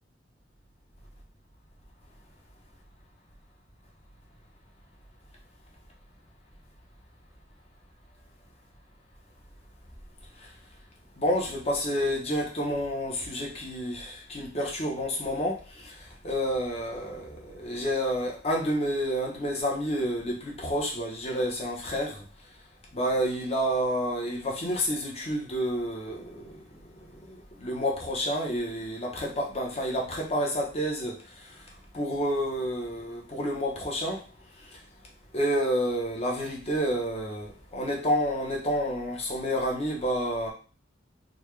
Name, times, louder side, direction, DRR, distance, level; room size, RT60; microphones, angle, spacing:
voice 1, 11.2-22.2 22.9-26.6 27.3-31.2 31.9-34.2 35.3-40.5, equal, 35° left, -1 dB, 0.9 m, -29 dB
4.0 x 2.3 x 3.2 m, 0.37 s
head